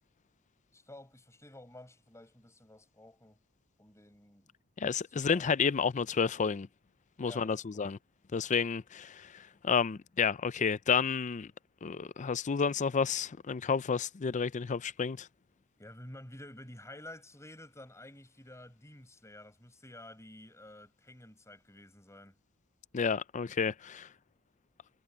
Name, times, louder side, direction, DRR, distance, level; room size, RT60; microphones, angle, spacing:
voice 1, 0.7-3.4 3.8-4.5 5.2-5.6 7.2-7.9 15.8-22.4, left 1 dB, 15° left, 6.1 m, -51 dB
voice 2, 4.8-6.7 7.2-8.0 8.3-11.5 11.8-15.3 22.9-24.1, left 6 dB, 35° left, 0.4 m, -31 dB
head